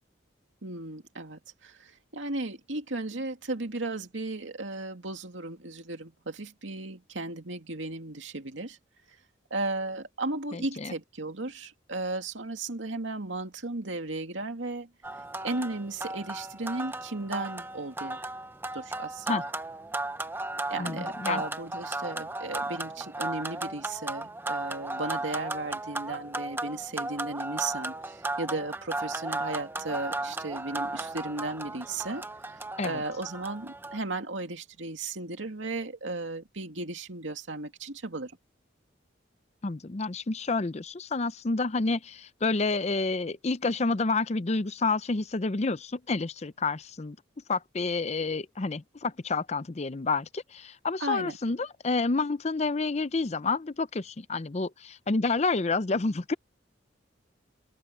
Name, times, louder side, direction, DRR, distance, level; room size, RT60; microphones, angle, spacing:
voice 1, 0.6-8.8 9.5-14.9 15.4-18.2 18.7-19.3 20.7-32.3 32.8-38.3 51.0-51.4, right 2 dB, 90° right, 2.4 m, -35 dB
voice 2, 10.5-10.9 19.3-19.4 20.8-21.4 32.8-33.0 39.6-47.2 47.5-56.3, left 3 dB, 35° left, 0.6 m, -29 dB
sound 1, 15.0-34.0, right 2 dB, 10° right, 0.8 m, -35 dB
open air
head